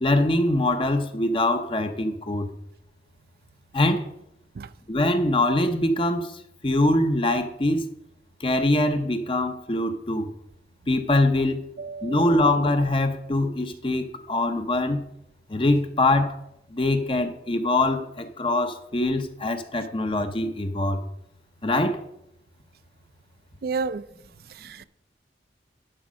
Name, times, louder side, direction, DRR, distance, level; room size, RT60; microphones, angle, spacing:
voice 1, 0.0-2.5 3.7-4.0 4.9-7.9 8.4-10.3 10.9-11.6 12.0-15.0 15.5-16.4 16.7-21.0 21.6-22.0, left 2 dB, 30° left, 0.7 m, -23 dB
voice 2, 11.8-12.3 23.6-24.0 24.6-24.8, right 4 dB, 55° right, 0.4 m, -31 dB
11.0 x 4.7 x 6.2 m
head